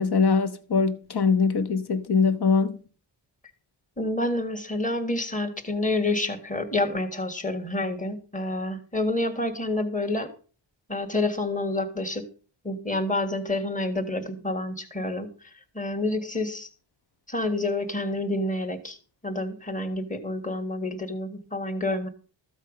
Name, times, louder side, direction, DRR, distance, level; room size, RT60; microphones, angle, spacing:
voice 1, 0.0-2.8, left 5 dB, 55° left, 1.3 m, -22 dB
voice 2, 4.0-10.3 10.9-12.2 12.6-15.3 15.8-16.7 17.3-19.0 19.2-22.1, left 2 dB, 15° left, 1.8 m, -28 dB
14.0 x 8.1 x 5.2 m
wide cardioid pair, 135°, 46 cm